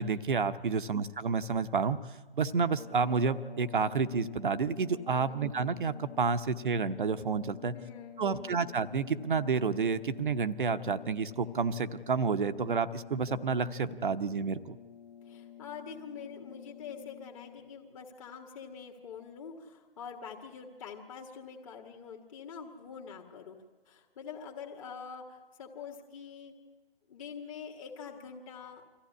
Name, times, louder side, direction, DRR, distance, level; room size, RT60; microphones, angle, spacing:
voice 1, 0.0-2.0 2.4-7.8 8.2-14.8, right 5 dB, 50° right, 12 dB, 1.0 m, -30 dB
voice 2, 0.7-1.0 5.1-5.4 7.6-8.5 15.2-23.6 23.9-26.5 27.1-28.8, left 6 dB, 30° left, 2 dB, 1.9 m, -45 dB
sound 1, 2.7-17.8, left 11 dB, 5° left, 0.6 m, -50 dB
25.0 x 15.0 x 9.6 m, 1.3 s
figure-of-eight pair, 135°, 32 cm